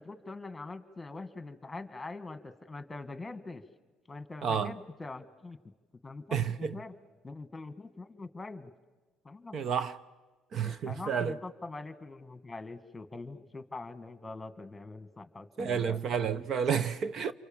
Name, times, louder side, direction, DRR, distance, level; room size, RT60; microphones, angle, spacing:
voice 1, 0.0-3.6 4.1-5.6 6.0-6.9 7.2-8.7 9.2-9.7 10.6-16.0, left 3 dB, 15° left, 1.8 m, -43 dB
voice 2, 4.4-4.7 6.3-6.8 9.5-10.0 10.5-11.3 15.6-17.3, right 7 dB, 50° right, 0.8 m, -30 dB
28.5 x 24.5 x 7.3 m
cardioid pair, 110°, 0 cm